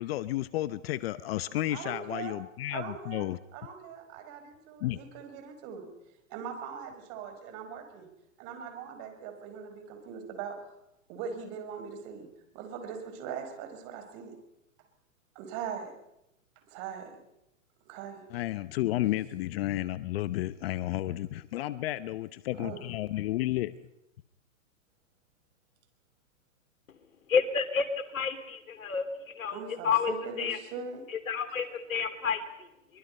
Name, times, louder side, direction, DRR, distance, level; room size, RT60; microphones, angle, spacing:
voice 1, 0.0-3.4 4.8-5.0 18.3-23.7, left 15 dB, 50° left, 15 dB, 0.9 m, -32 dB
voice 2, 1.7-2.4 2.7-5.9 6.3-8.1 8.4-10.5 11.1-12.3 12.5-14.3 15.3-15.9 16.7-17.1 17.9-18.2 22.6-22.8 29.5-31.0, right 7 dB, 40° right, 6 dB, 5.2 m, -41 dB
voice 3, 27.3-27.8 28.1-29.1 29.4-30.6 31.1-32.4, left 6 dB, 90° left, 9 dB, 3.0 m, -29 dB
24.0 x 22.5 x 5.5 m, 0.85 s
hypercardioid pair, 135°, 39 cm